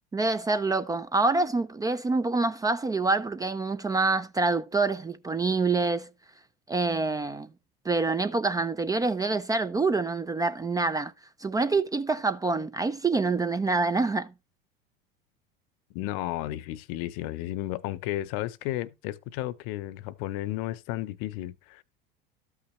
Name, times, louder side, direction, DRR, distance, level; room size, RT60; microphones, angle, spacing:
voice 1, 0.1-6.1 6.7-7.5 7.9-11.1 11.4-14.3, right 3 dB, 10° right, 0.4 m, -26 dB
voice 2, 15.9-21.8, left 15 dB, 55° left, 0.7 m, -33 dB
13.0 x 5.7 x 3.1 m
hypercardioid pair, 85°, 29 cm